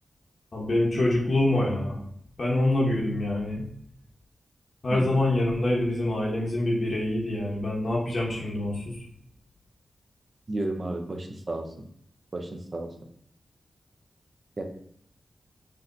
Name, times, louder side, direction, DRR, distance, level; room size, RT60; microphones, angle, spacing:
voice 1, 0.5-2.0 2.4-3.6 4.8-9.0, left 1 dB, 45° left, -4 dB, 0.9 m, -25 dB
voice 2, 10.5-11.7 12.3-12.9 14.6-14.7, right 2 dB, 35° right, 2 dB, 0.5 m, -32 dB
6.0 x 2.7 x 2.6 m, 0.66 s
wide cardioid pair, 170°, 0 cm